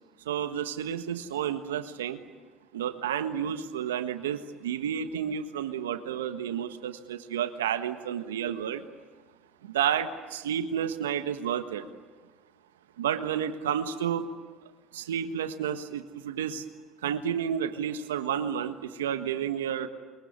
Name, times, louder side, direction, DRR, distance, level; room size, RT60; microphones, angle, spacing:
voice 1, 0.2-2.2 2.7-8.8 9.6-11.9 13.0-14.3 14.9-16.6 17.0-19.9, right 9 dB, 90° right, 9 dB, 1.4 m, -31 dB
23.0 x 22.5 x 9.7 m, 1.4 s
hypercardioid pair, 75°, 0 cm